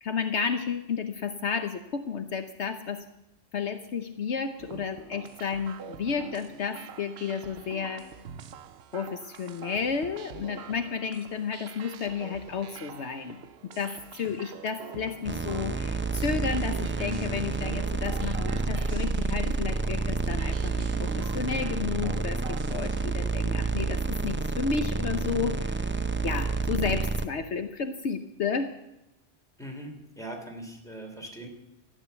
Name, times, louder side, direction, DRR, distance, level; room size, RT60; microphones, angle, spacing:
voice 1, 0.0-3.1 3.5-8.0 8.9-25.9 26.2-28.7, left 6 dB, 70° left, 8 dB, 1.1 m, -32 dB
sound 1, 4.6-23.1, right 8 dB, 65° right, 0.9 m, -45 dB
sound 2, 15.2-27.3, right 3 dB, 20° right, 0.3 m, -29 dB
voice 2, 29.6-31.5, right 1 dB, 5° left, 1 dB, 3.1 m, -41 dB
14.5 x 10.5 x 8.1 m, 0.93 s
omnidirectional pair, 1.2 m